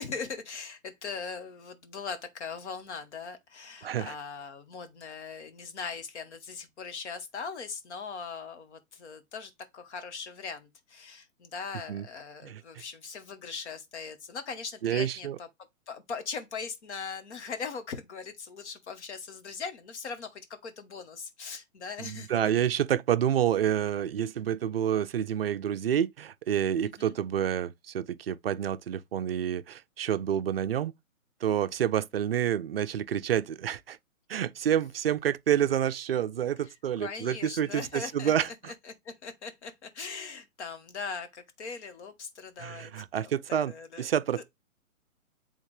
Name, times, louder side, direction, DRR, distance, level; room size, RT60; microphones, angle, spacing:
voice 1, 0.0-15.5 15.9-22.5 26.8-27.1 36.6-44.4, left 5 dB, 50° left, 1.4 m, -40 dB
voice 2, 3.8-4.1 11.9-12.0 12.4-12.6 14.8-15.4 22.0-30.9 31.4-34.0 34.3-38.7 42.6-44.4, right 9 dB, 45° right, 0.4 m, -28 dB
8.3 x 3.5 x 3.2 m
hypercardioid pair, 145°, 42 cm